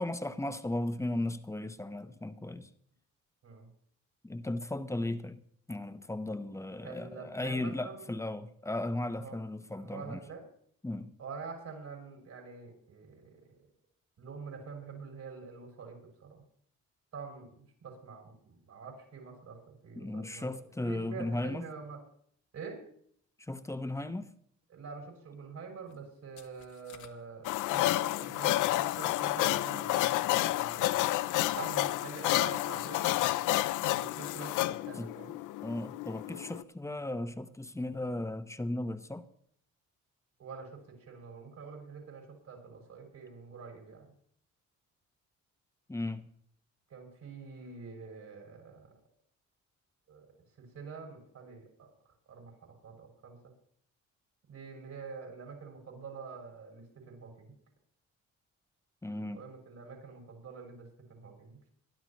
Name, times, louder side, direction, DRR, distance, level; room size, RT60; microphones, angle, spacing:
voice 1, 0.0-2.7 4.2-5.4 5.7-10.2 10.8-11.2 20.0-21.6 23.5-24.3 35.0-35.1 35.6-39.3 45.9-46.3 59.0-59.4, left 1 dB, 10° left, 1.0 m, -36 dB
voice 2, 6.8-8.1 9.1-9.4 9.7-10.4 11.2-13.6 14.2-16.4 17.1-20.5 20.8-22.0 22.5-22.8 24.7-31.1 31.4-35.3 40.4-44.1 46.9-48.9 50.1-53.4 54.5-57.5 59.3-61.6, right 5 dB, 65° right, 6.9 m, -46 dB
sound 1, 25.9-26.0 26.4-28.6, left 9 dB, 70° left, 1.6 m, -55 dB
sound 2, 27.4-36.6, left 16 dB, 85° left, 0.5 m, -30 dB
22.5 x 12.0 x 3.1 m
cardioid pair, 90°, 30 cm